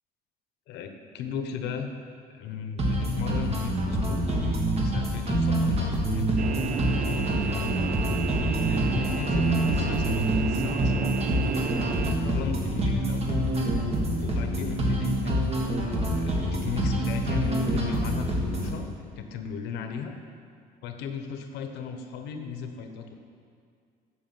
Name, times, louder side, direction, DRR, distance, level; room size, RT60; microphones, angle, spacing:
voice 1, 0.7-1.9 2.3-4.2 4.8-7.9 8.7-11.1 11.8-13.4 14.2-18.9 19.2-20.1 20.8-23.1, left 6 dB, 90° left, 6 dB, 1.1 m, -36 dB
sound 1, 2.8-18.8, right 1 dB, 35° right, 1.8 m, -26 dB
sound 2, 6.4-12.1, right 7 dB, 55° right, 0.5 m, -32 dB
8.8 x 6.7 x 7.5 m, 2.2 s
cardioid pair, 110°, 17 cm